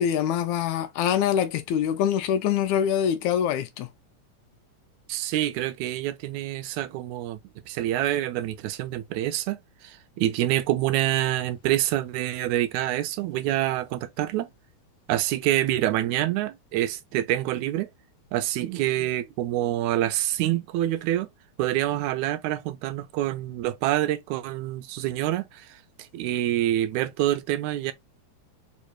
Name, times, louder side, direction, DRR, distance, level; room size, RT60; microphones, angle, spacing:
voice 1, 0.0-3.9, left 9 dB, 80° left, 1.9 m, -24 dB
voice 2, 5.1-7.4 7.7-14.5 15.1-17.9 18.3-21.3 21.6-27.9, right 13 dB, 80° right, 1.9 m, -26 dB
4.7 x 3.0 x 2.3 m
omnidirectional pair, 3.4 m